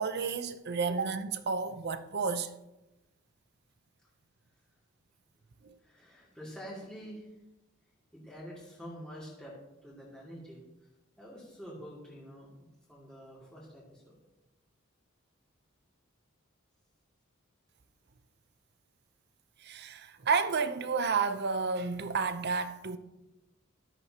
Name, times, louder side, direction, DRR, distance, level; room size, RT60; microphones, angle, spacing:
voice 1, 0.0-2.5 5.6-5.7 19.6-23.0, right 5 dB, 55° right, 0.7 m, -31 dB
voice 2, 5.8-7.4 8.1-9.6 9.8-10.9 11.2-12.5 12.9-14.2, equal, 5° left, 2.5 m, -47 dB
14.0 x 12.0 x 2.9 m
head